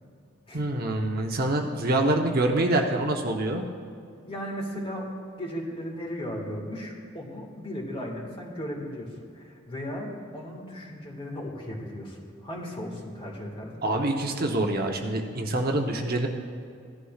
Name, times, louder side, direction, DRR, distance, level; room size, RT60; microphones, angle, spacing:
voice 1, 0.5-3.6 13.8-16.3, right 1 dB, 50° right, 2 dB, 0.9 m, -25 dB
voice 2, 4.2-5.1 5.4-13.8, equal, 25° left, -1 dB, 1.8 m, -36 dB
16.5 x 11.5 x 2.4 m, 2.3 s
head